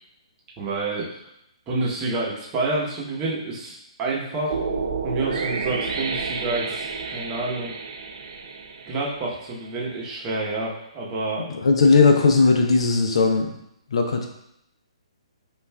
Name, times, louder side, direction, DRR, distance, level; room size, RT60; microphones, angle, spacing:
voice 1, 0.6-1.3 1.7-4.5 5.0-7.7 8.9-11.5, right 3 dB, 25° right, -4 dB, 0.8 m, -28 dB
sound 1, 4.5-9.7, right 4 dB, 60° right, 0.5 m, -30 dB
voice 2, 11.6-13.6 13.9-14.3, left 4 dB, 65° left, 3 dB, 0.5 m, -17 dB
5.3 x 2.4 x 2.2 m, 0.78 s
figure-of-eight pair, 135°, 3 cm